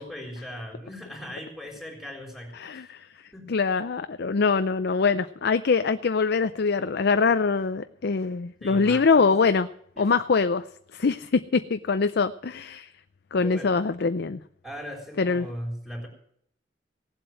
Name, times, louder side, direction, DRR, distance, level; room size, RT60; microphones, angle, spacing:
voice 1, 0.0-2.9 3.3-3.5 8.6-9.3 10.0-10.1 13.4-13.9 14.6-16.1, equal, ahead, 1 dB, 3.4 m, -39 dB
voice 2, 2.6-3.0 3.5-9.7 10.0-10.6 10.9-12.9 13.3-14.4 15.2-15.5, left 4 dB, 60° left, 11 dB, 0.5 m, -23 dB
17.5 x 7.8 x 7.7 m, 0.65 s
head